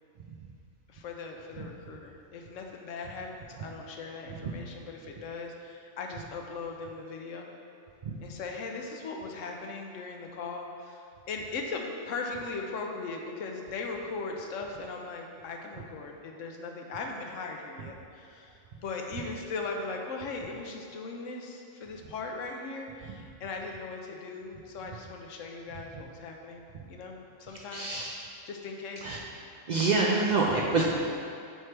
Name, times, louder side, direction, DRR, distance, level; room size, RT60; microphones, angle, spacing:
voice 1, 0.9-7.5 8.2-28.0 28.5-29.2, left 3 dB, 70° left, 2 dB, 1.0 m, -39 dB
voice 2, 27.7-28.2 29.0-29.2 29.7-31.1, right 3 dB, 85° right, -3 dB, 0.4 m, -27 dB
7.9 x 4.4 x 3.4 m, 2.5 s
omnidirectional pair, 1.4 m